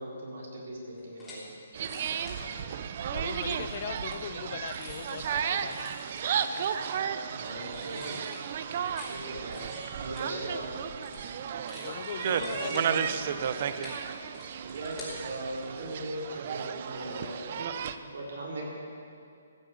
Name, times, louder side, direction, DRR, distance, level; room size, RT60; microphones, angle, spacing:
voice 1, 0.0-1.5 7.2-8.2 9.1-10.7 12.3-13.4 14.6-17.6 17.9-18.7, right 1 dB, 65° right, 4.0 m, -39 dB
sound 1, 1.0-1.4 1.8-2.4 3.2-7.1 7.4-9.1 9.4-10.8 11.0-11.3 11.6-15.3 15.5-15.7, left 2 dB, 10° left, 3.3 m, -48 dB
sound 2, 1.7-18.0, right 8 dB, 40° right, 0.6 m, -34 dB
voice 2, 2.3-2.7 3.1-6.0 11.8-13.1, left 9 dB, 40° left, 0.4 m, -40 dB
15.5 x 7.7 x 8.4 m
hypercardioid pair, 165°, 0 cm